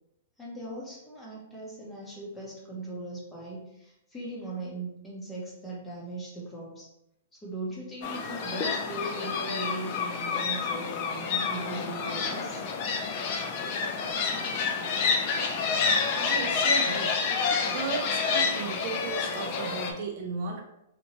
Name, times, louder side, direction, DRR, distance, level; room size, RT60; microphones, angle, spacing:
voice 1, 0.4-6.9 7.4-12.6, right 2 dB, 10° left, -5 dB, 0.7 m, -39 dB
sound 1, 8.0-19.9, left 5 dB, 35° left, 0.4 m, -29 dB
voice 2, 16.2-17.1 17.7-20.6, right 5 dB, 45° right, 2 dB, 0.3 m, -35 dB
2.8 x 2.2 x 2.9 m, 0.84 s
hypercardioid pair, 160°, 0 cm